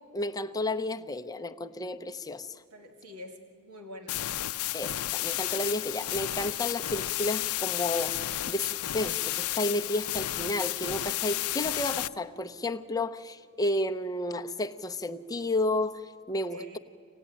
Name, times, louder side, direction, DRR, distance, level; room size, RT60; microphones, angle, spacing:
voice 1, 0.1-2.6 4.7-16.8, left 1 dB, 15° left, 6 dB, 0.7 m, -32 dB
voice 2, 2.7-4.2 16.3-16.8, left 1 dB, 85° right, 4 dB, 2.2 m, -46 dB
sound 1, 4.1-12.1, left 14 dB, 75° left, 0.5 m, -32 dB
25.0 x 18.5 x 10.0 m, 2.2 s
head